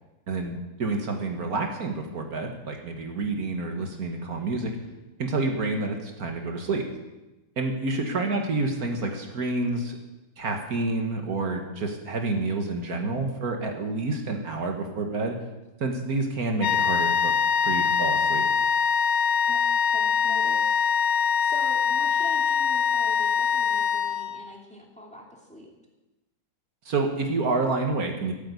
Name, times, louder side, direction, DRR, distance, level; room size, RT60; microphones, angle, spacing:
voice 1, 0.3-4.8 5.2-6.8 7.6-10.0 10.4-15.4 15.8-17.3 17.6-18.5 26.9-28.3, right 3 dB, 65° right, 3 dB, 1.8 m, -28 dB
voice 2, 7.9-8.4 19.5-20.8 21.4-25.7, equal, 5° left, -1 dB, 2.5 m, -44 dB
sound 1, 16.6-24.5, left 7 dB, 60° left, 0.7 m, -23 dB
13.5 x 9.0 x 8.3 m, 1.1 s
omnidirectional pair, 1.7 m